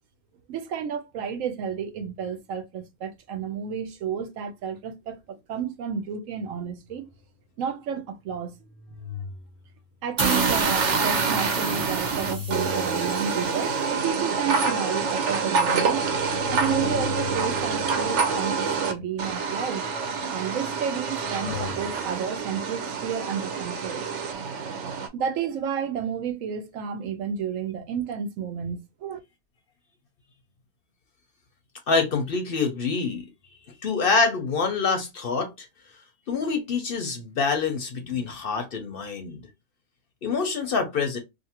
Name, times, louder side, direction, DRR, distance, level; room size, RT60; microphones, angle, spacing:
voice 1, 0.5-7.0 7.6-8.5 10.0-16.1 16.5-19.8 20.3-24.0 25.1-29.2, right 7 dB, 90° right, 1.0 m, -31 dB
sound 1, 6.9-7.2 8.4-9.9 11.3-13.6 14.3-19.4 20.6-22.4, left 7 dB, 75° left, 0.9 m, -39 dB
sound 2, 10.2-13.6, right 3 dB, 35° right, 0.9 m, -32 dB
sound 3, 10.2-18.9 19.2-25.1, right 5 dB, 70° right, 0.9 m, -27 dB
voice 2, 31.9-33.2 33.8-35.7 36.3-39.4 40.2-41.2, left 4 dB, 55° left, 0.7 m, -26 dB
2.5 x 2.5 x 2.8 m
omnidirectional pair, 1.4 m